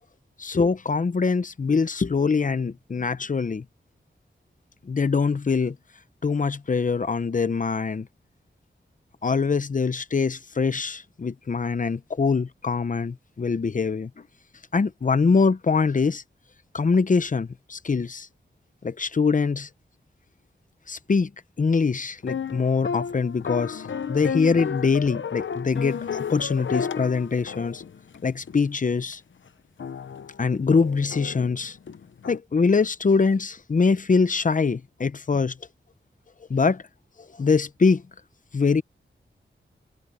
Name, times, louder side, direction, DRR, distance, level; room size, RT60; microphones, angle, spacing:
voice 1, 0.4-3.6 4.9-5.8 6.2-8.1 9.2-14.1 14.7-16.2 16.7-18.3 18.8-19.7 20.9-21.3 21.6-27.8 28.2-29.2 30.4-31.8 32.3-35.6 36.5-36.8 37.4-38.0 38.5-38.8, left 4 dB, 40° left, 0.7 m, -23 dB
sound 1, 22.2-28.7 29.1-29.2 29.8-32.4, left 6 dB, 70° left, 0.8 m, -33 dB
wide cardioid pair, 120°, 20 cm